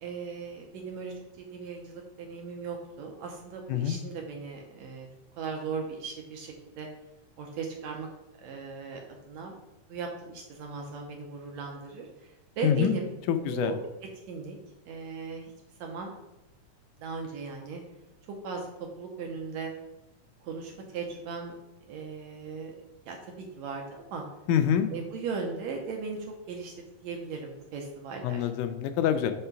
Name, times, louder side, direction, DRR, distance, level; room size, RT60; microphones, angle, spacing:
voice 1, 0.0-5.1 5.4-6.9 7.4-8.1 8.4-9.0 9.3-9.5 9.9-13.1 13.5-13.8 14.3-14.6 14.9-15.5 15.8-16.1 17.0-17.8 18.3-19.7 20.4-21.6 21.9-22.8 23.1-24.2 24.9-28.5, right 5 dB, 75° right, 2 dB, 1.8 m, -37 dB
voice 2, 12.6-13.0 13.3-13.7 24.5-24.9 28.2-29.3, left 9 dB, 80° left, 8 dB, 2.0 m, -25 dB
5.5 x 3.8 x 5.8 m, 0.95 s
omnidirectional pair, 3.6 m